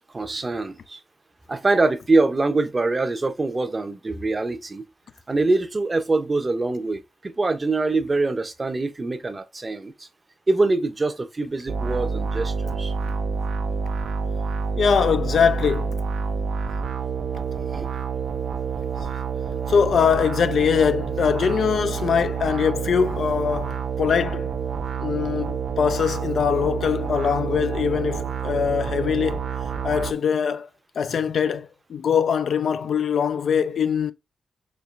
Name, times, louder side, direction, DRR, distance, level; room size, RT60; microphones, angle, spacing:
voice 1, 0.1-1.0 1.5-4.8 5.3-10.1 10.5-12.9 17.7-17.9, right 3 dB, 30° right, 0.6 m, -24 dB
sound 1, 11.7-30.1, right 6 dB, 75° right, 0.4 m, -28 dB
voice 2, 14.8-16.0 19.7-24.5 25.0-29.5 29.8-30.7 31.0-34.1, left 7 dB, 70° left, 0.3 m, -22 dB
4.4 x 2.8 x 2.4 m
wide cardioid pair, 105°, 0 cm